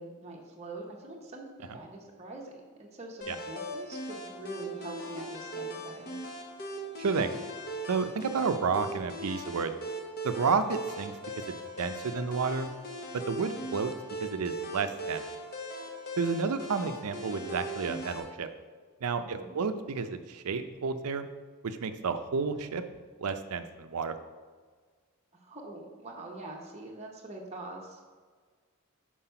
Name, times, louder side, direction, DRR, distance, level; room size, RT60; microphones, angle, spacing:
voice 1, 0.0-6.1 19.2-19.6 25.3-28.0, right 2 dB, 30° right, -1 dB, 0.8 m, -44 dB
sound 1, 3.2-18.2, right 1 dB, 40° left, 0.9 m, -39 dB
voice 2, 7.0-7.3 7.9-9.7 10.2-11.1 11.8-12.7 13.3-13.9 14.2-15.2 16.2-18.5 19.0-21.3 21.6-22.8 23.2-24.2, right 5 dB, 85° right, 9 dB, 0.5 m, -31 dB
5.7 x 4.5 x 5.6 m, 1.5 s
head